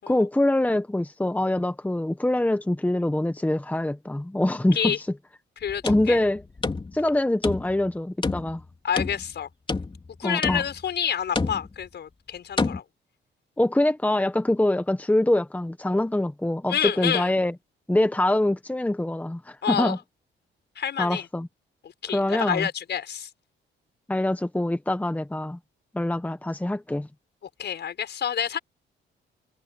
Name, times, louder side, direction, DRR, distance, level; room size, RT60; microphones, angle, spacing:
voice 1, 0.1-5.1 5.8-6.4 6.9-8.6 10.2-10.6 13.6-17.5 17.9-20.0 21.0-21.5 22.1-22.7 24.1-25.6 25.9-27.1, left 1 dB, 10° left, 1.4 m, -24 dB
voice 2, 5.6-6.2 8.8-9.5 10.2-12.8 16.7-17.3 19.6-20.0 20.8-21.3 21.8-23.3 27.6-28.6, left 8 dB, 60° left, 6.2 m, -28 dB
sound 1, 5.6-7.1 7.4-7.9 8.2-9.3 9.7-10.1 10.4-10.9 11.4-11.9 12.6-12.8, left 3 dB, 25° left, 2.9 m, -29 dB
cardioid pair, 90°, 20 cm